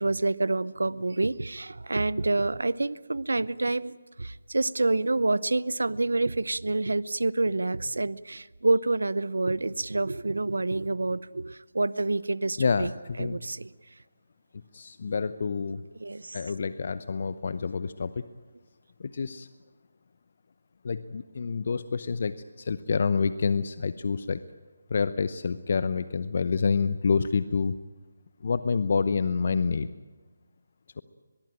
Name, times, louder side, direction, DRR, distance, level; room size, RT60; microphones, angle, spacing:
voice 1, 0.0-12.9 13.2-13.7 15.9-16.4, right 2 dB, 70° right, 20 dB, 0.8 m, -27 dB
voice 2, 12.6-13.4 14.7-15.8 16.3-18.3 19.0-19.5 20.8-24.4 24.9-27.8 28.4-29.9, left 5 dB, 50° left, 14 dB, 0.8 m, -28 dB
23.0 x 21.5 x 8.9 m, 1.3 s
figure-of-eight pair, 150°, 0 cm